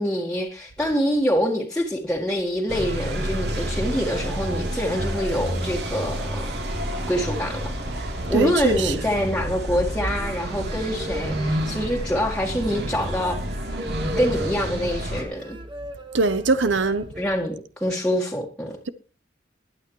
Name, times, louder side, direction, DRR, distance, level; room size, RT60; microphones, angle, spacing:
voice 1, 0.0-6.7 7.1-7.7 8.3-13.4 14.2-15.6 17.2-18.8, equal, 5° left, 1.8 m, -25 dB
sound 1, 2.7-15.2, equal, 65° right, 3.4 m, -29 dB
voice 2, 8.3-9.1 16.1-17.1, right 3 dB, 85° right, 0.9 m, -22 dB
sound 2, 10.1-17.2, equal, 25° right, 1.6 m, -38 dB
21.5 x 8.6 x 3.2 m
head